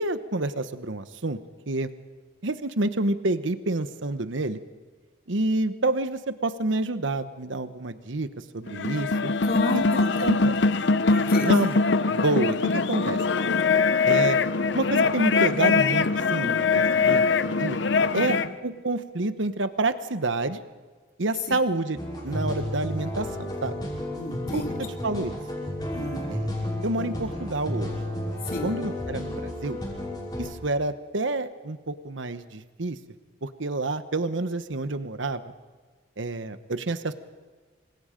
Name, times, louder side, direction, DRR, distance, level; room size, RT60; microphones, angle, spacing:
voice 1, 0.0-1.4 1.7-1.9 2.4-4.6 5.3-8.3 8.5-9.3 9.7-9.8 10.2-10.5 11.4-11.8 12.1-13.2 14.0-14.4 14.7-16.1 16.3-17.8 18.1-20.6 21.2-22.0 22.2-23.7 24.5-25.3 26.3-27.9 28.6-29.8 30.4-33.0 33.4-35.5 36.2-37.1, right 2 dB, 75° right, 11 dB, 1.1 m, -28 dB
sound 1, 8.7-18.5, left 4 dB, 65° left, 0.7 m, -22 dB
voice 2, 9.5-10.3 11.1-11.5 18.1-18.5 24.2-24.8 25.9-26.3 28.4-28.7, left 2 dB, 45° left, 1 dB, 3.1 m, -31 dB
sound 2, 21.9-30.5, left 1 dB, 20° left, 6.0 m, -32 dB
28.0 x 25.5 x 5.2 m, 1.4 s
head